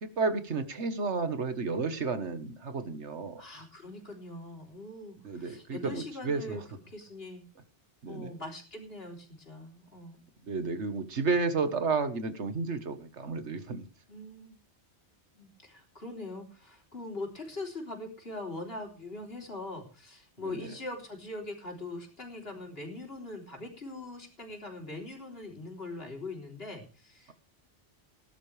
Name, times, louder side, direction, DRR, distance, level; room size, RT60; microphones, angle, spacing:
voice 1, 0.0-3.4 5.2-6.6 8.0-8.3 10.5-13.8 20.5-20.7, right 4 dB, 90° right, 10 dB, 1.7 m, -32 dB
voice 2, 3.4-7.5 8.1-10.2 14.1-14.6 15.3-27.3, left 2 dB, 60° left, 2 dB, 3.9 m, -42 dB
19.5 x 11.0 x 3.4 m, 0.35 s
omnidirectional pair, 1.1 m